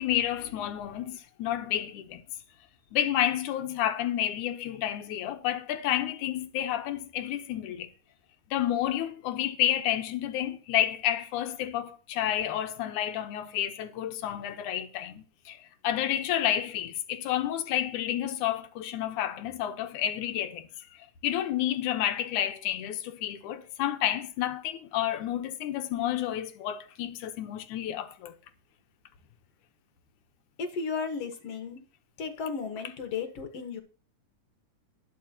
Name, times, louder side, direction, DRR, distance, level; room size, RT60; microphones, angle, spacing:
voice 1, 0.0-2.2 2.9-7.9 8.5-20.7 21.2-28.4, left 11 dB, 75° left, 2.4 m, -30 dB
voice 2, 30.6-31.8 32.2-33.8, left 5 dB, 55° left, 2.3 m, -34 dB
20.0 x 6.8 x 2.9 m
omnidirectional pair, 3.7 m